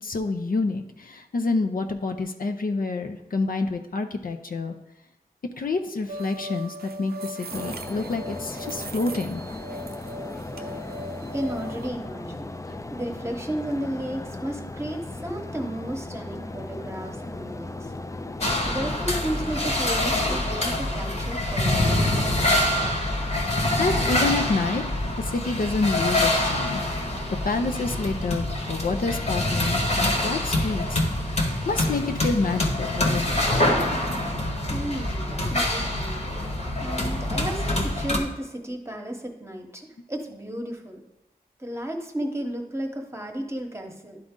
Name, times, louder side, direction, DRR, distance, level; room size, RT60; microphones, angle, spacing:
voice 1, 0.0-4.7 5.6-9.4 12.7-12.8 23.8-27.2 27.4-31.3 31.6-33.4, left 3 dB, 65° left, 5 dB, 0.6 m, -28 dB
sound 1, 6.1-11.9, right 1 dB, 85° right, 0.5 m, -38 dB
sound 2, 7.5-19.8, left 2 dB, 20° left, 0.4 m, -37 dB
voice 2, 10.7-12.5 12.9-17.9 18.6-22.0 34.7-36.3 36.8-41.0 41.6-44.2, right 1 dB, 15° right, 3 dB, 1.1 m, -33 dB
sound 3, 18.4-38.2, left 1 dB, 45° left, 1.2 m, -25 dB
11.0 x 3.8 x 3.7 m, 0.91 s
wide cardioid pair, 70°, 16 cm